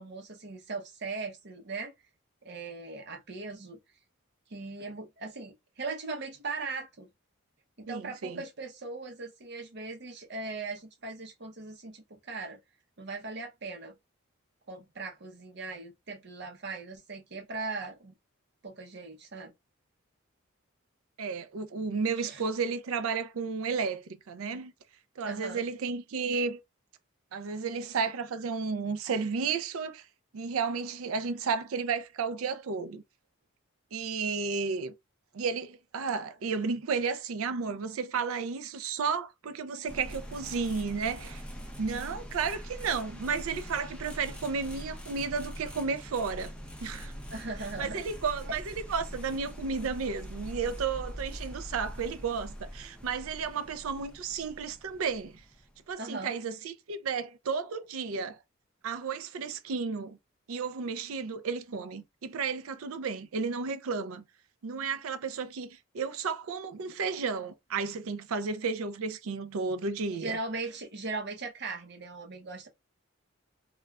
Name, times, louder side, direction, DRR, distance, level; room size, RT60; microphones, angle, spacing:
voice 1, 0.0-1.9 2.4-3.8 4.5-7.1 7.8-12.6 13.0-14.0 14.7-18.1 18.6-19.5 22.2-22.4 25.2-25.7 47.3-48.0 56.0-56.3 70.1-72.7, right 3 dB, 55° right, 0.8 m, -39 dB
voice 2, 7.9-8.4 21.2-24.7 25.2-26.6 27.3-30.1 30.3-33.0 33.9-34.9 35.3-41.4 41.8-46.5 46.8-47.1 47.8-55.4 55.9-58.4 58.8-60.2 60.5-64.2 64.6-70.4, right 5 dB, 80° right, 0.4 m, -33 dB
sound 1, 39.9-55.9, equal, 5° left, 0.5 m, -43 dB
2.3 x 2.3 x 3.2 m
head